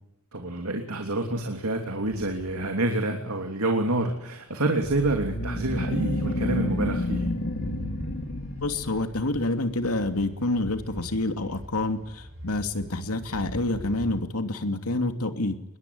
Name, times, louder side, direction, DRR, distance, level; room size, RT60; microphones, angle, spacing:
voice 1, 0.3-7.3, right 2 dB, 80° right, 3 dB, 3.1 m, -27 dB
sound 1, 1.4-3.0 3.6-3.8 4.5-5.1 5.4-5.5 5.7-5.8 6.0-14.2, equal, 60° right, 7.8 m, -44 dB
sound 2, 4.8-9.2, left 1 dB, 55° left, 3.1 m, -30 dB
voice 2, 8.6-15.6, left 2 dB, 90° left, 7 dB, 2.8 m, -28 dB
26.0 x 22.0 x 9.6 m, 0.86 s
head